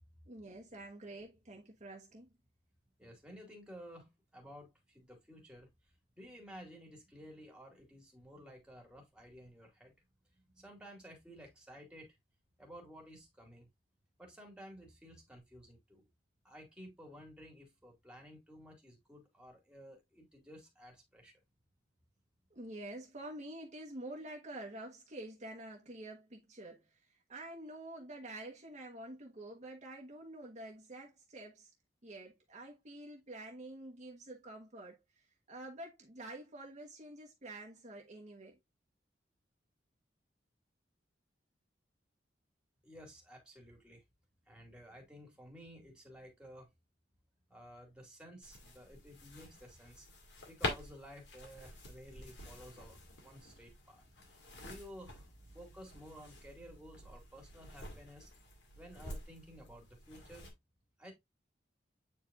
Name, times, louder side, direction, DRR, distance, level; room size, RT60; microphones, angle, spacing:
voice 1, 0.3-2.3 22.5-26.8 27.3-31.7 32.0-35.0 35.5-38.6, right 1 dB, 40° right, 1.3 m, -48 dB
voice 2, 3.0-5.7 6.2-9.9 10.5-12.1 12.6-13.7 14.2-16.1 16.4-21.3 42.8-44.0 44.5-46.7 47.5-50.1 50.4-54.0 54.6-55.2 55.5-58.3 58.8-60.5 61.0-61.1, equal, 5° right, 2.3 m, -54 dB
sound 1, 48.4-60.5, left 2 dB, 90° left, 2.2 m, -47 dB
8.5 x 4.6 x 2.5 m
head